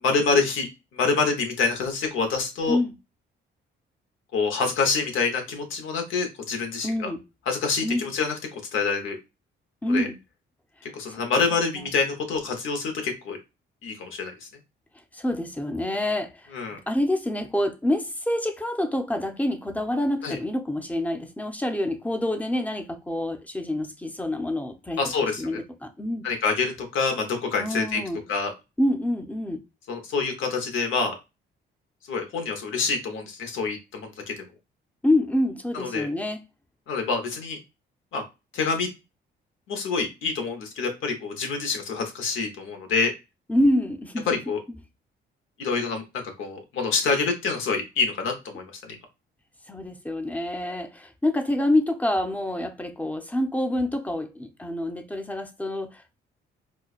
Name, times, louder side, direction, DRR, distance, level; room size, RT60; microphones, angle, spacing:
voice 1, 0.0-0.7 0.9-2.8 4.3-7.1 7.5-8.3 8.7-9.2 9.9-10.1 10.9-13.4 13.8-14.3 16.5-16.8 20.2-20.4 25.0-25.4 26.2-28.0 28.3-28.5 29.9-31.1 32.1-34.5 35.7-36.1 36.9-37.6 38.1-38.2 38.5-38.9 39.7-43.1 44.3-44.6 45.6-46.0 46.4-49.0, left 4 dB, 80° left, 1.0 m, -26 dB
voice 2, 6.8-7.2 7.8-8.1 9.8-10.2 11.1-11.9 15.1-25.0 25.4-26.3 27.5-28.2 28.8-29.6 35.0-36.4 43.5-44.4 44.7-44.8 49.7-56.2, left 1 dB, 5° left, 0.6 m, -27 dB
4.4 x 2.2 x 2.4 m
cardioid pair, 90°, 20 cm